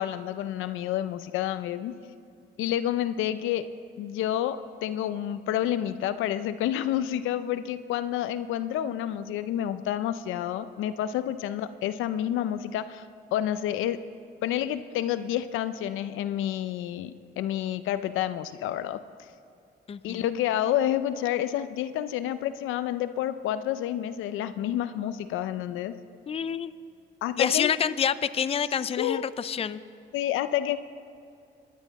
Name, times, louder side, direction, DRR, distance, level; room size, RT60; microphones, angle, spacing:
voice 1, 0.0-1.9 2.6-3.7 4.0-13.0 13.3-14.1 14.4-19.0 20.0-25.9 27.2-27.7 29.0-29.3 30.1-30.8, left 11 dB, 90° left, 12 dB, 0.6 m, -29 dB
voice 2, 19.9-20.2 26.3-26.7 27.4-29.8, left 8 dB, 30° left, 14 dB, 0.4 m, -27 dB
25.0 x 10.5 x 4.1 m, 2.5 s
cardioid pair, 90°, 20 cm